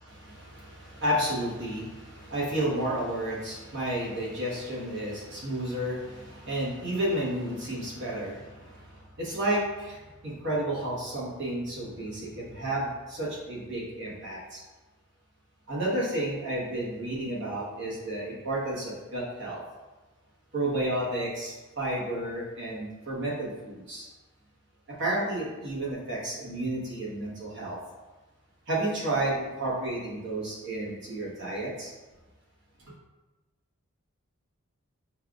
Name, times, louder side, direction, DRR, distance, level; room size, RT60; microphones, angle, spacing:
voice 1, 0.0-14.6 15.7-19.6 20.5-24.1 25.0-27.8 28.7-31.9 32.8-32.9, right 1 dB, 55° right, -6 dB, 1.2 m, -31 dB
5.6 x 2.3 x 2.4 m, 1.2 s
head